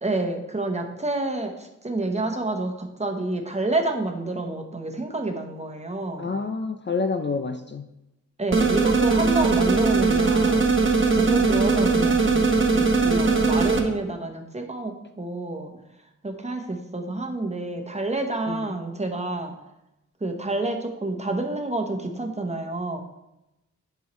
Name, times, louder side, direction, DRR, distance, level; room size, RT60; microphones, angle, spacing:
voice 1, 0.0-6.3 8.4-10.7 11.1-12.4 12.7-15.7 16.2-19.5 20.2-23.0, right 2 dB, 20° right, 4 dB, 1.0 m, -28 dB
voice 2, 6.2-7.9 18.5-18.7, left 4 dB, 35° left, 7 dB, 0.5 m, -28 dB
sound 1, 8.5-13.8, right 4 dB, 40° right, 1.0 m, -20 dB
10.5 x 5.5 x 3.1 m, 0.90 s
wide cardioid pair, 95°, 31 cm